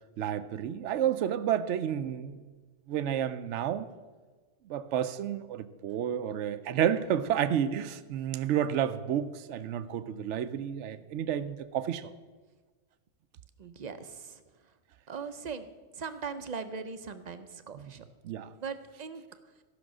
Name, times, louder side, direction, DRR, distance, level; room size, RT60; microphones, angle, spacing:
voice 1, 0.2-2.5 2.9-3.9 4.7-12.1 17.7-17.9 18.2-18.5, right 9 dB, 75° right, 13 dB, 0.9 m, -31 dB
voice 2, 13.6-14.4 15.1-15.7 16.0-18.0 18.6-19.2, right 5 dB, 45° right, 10 dB, 0.6 m, -39 dB
13.5 x 5.9 x 6.1 m, 1.3 s
omnidirectional pair, 1.3 m